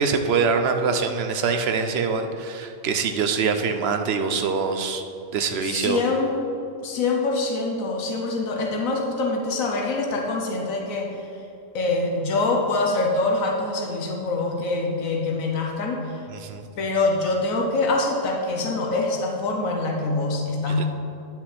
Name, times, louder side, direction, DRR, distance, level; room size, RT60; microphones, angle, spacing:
voice 1, 0.0-5.0 5.3-6.0 16.3-16.6 20.7-20.9, right 5 dB, 60° right, 7 dB, 0.8 m, -24 dB
voice 2, 5.6-6.4 6.8-11.3 11.7-16.2 16.8-20.9, left 3 dB, 85° left, 1 dB, 1.3 m, -25 dB
9.7 x 5.9 x 4.2 m, 2.7 s
omnidirectional pair, 1.4 m